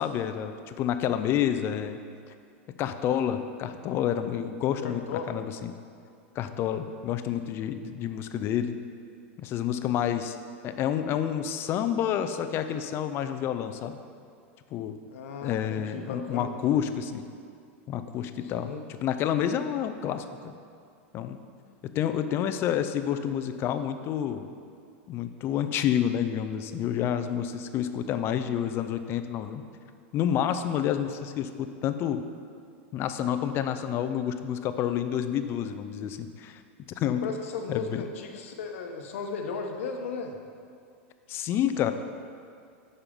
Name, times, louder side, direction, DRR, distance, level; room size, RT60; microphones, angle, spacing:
voice 1, 0.0-2.0 2.8-5.0 5.3-5.7 6.4-8.7 9.4-10.4 10.6-14.0 14.7-15.0 15.4-17.2 17.9-18.7 19.0-20.5 21.1-21.4 21.9-24.5 25.1-29.6 30.1-32.2 32.9-36.6 37.0-37.2 37.7-38.0 41.3-41.9, left 9 dB, 35° left, 9 dB, 0.5 m, -29 dB
voice 2, 4.8-5.4 15.1-16.8 18.4-18.8 37.0-40.4, left 4 dB, 80° left, 4 dB, 1.1 m, -36 dB
9.1 x 5.6 x 5.2 m, 2.3 s
supercardioid pair, 145°, 7 cm